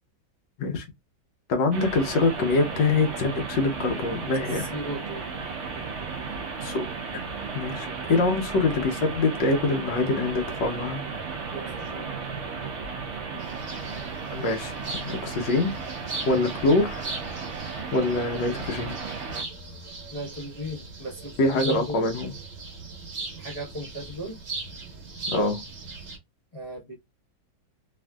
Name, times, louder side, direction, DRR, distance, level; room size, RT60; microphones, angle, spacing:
voice 1, 1.5-4.7 6.6-6.8 7.1-7.2 7.5-11.0 14.3-15.7 16.2-17.0 17.9-19.0 21.4-22.3 25.3-25.6, left 3 dB, 70° left, 1.3 m, -24 dB
sound 1, 1.7-19.4, right 5 dB, 75° right, 0.6 m, -35 dB
voice 2, 4.5-5.3 5.8-5.9 11.5-12.2 20.1-22.0 23.4-24.4 26.5-26.9, equal, 30° left, 0.6 m, -36 dB
sound 2, 13.4-26.2, right 3 dB, 50° right, 1.0 m, -39 dB
3.4 x 2.5 x 2.2 m
omnidirectional pair, 2.1 m